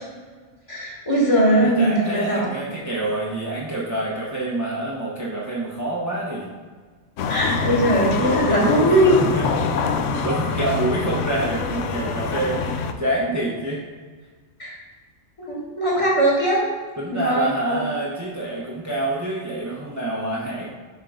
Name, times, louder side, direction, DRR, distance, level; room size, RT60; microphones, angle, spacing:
voice 1, 0.7-2.5 7.3-9.2 14.6-14.8 15.4-16.6 17.1-17.8, right 1 dB, 25° left, -5 dB, 1.8 m, -20 dB
voice 2, 1.5-6.5 7.5-7.6 8.2-8.9 9.2-9.6 10.1-13.8 17.0-20.7, right 2 dB, 15° right, -5 dB, 0.9 m, -27 dB
sound 1, 7.2-12.9, left 5 dB, 80° left, 0.9 m, -25 dB
7.4 x 3.7 x 5.0 m, 1.5 s
omnidirectional pair, 1.3 m